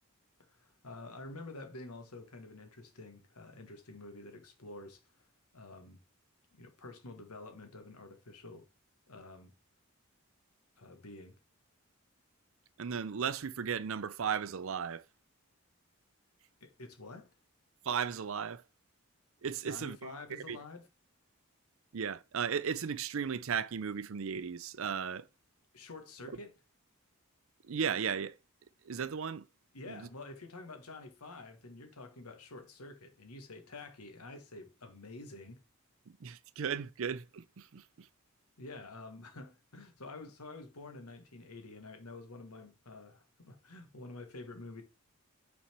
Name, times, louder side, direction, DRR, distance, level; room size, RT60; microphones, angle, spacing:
voice 1, 0.5-5.0 5.5-6.0 6.5-8.6 9.1-9.5 10.8-11.4 16.6-17.3 19.6-20.9 25.7-26.5 29.7-35.6 38.6-44.8, left 2 dB, 90° left, 1.5 m, -48 dB
voice 2, 12.8-15.0 17.8-18.6 19.4-20.2 20.5-20.6 21.9-25.3 27.6-28.4 28.8-29.5 29.9-30.1 36.1-38.1, right 7 dB, 65° right, 0.5 m, -35 dB
5.9 x 4.2 x 4.4 m
head